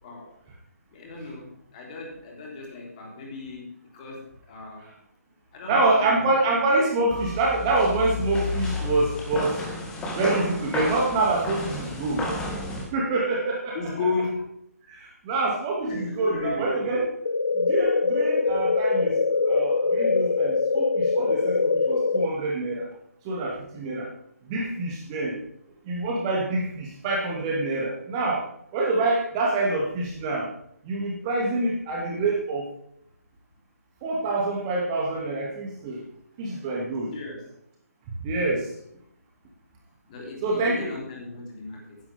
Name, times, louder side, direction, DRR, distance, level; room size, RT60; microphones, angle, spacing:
voice 1, 0.9-4.9 5.5-6.2 13.7-14.6 15.9-16.8 37.1-37.5 40.1-42.0, left 4 dB, 25° left, -1 dB, 3.4 m, -35 dB
voice 2, 5.7-9.7 10.1-12.3 12.9-13.9 14.9-17.1 17.5-22.9 23.2-24.1 24.4-25.4 25.9-28.5 28.7-30.5 30.8-32.7 34.0-36.0 36.4-37.1 38.2-38.7 40.4-40.9, right 2 dB, 20° right, -3 dB, 2.3 m, -26 dB
sound 1, 7.1-12.8, left 2 dB, 10° left, 1.7 m, -31 dB
sound 2, 17.2-22.3, left 4 dB, 65° left, 0.5 m, -23 dB
14.5 x 10.5 x 3.5 m, 0.72 s
figure-of-eight pair, 145°, 9 cm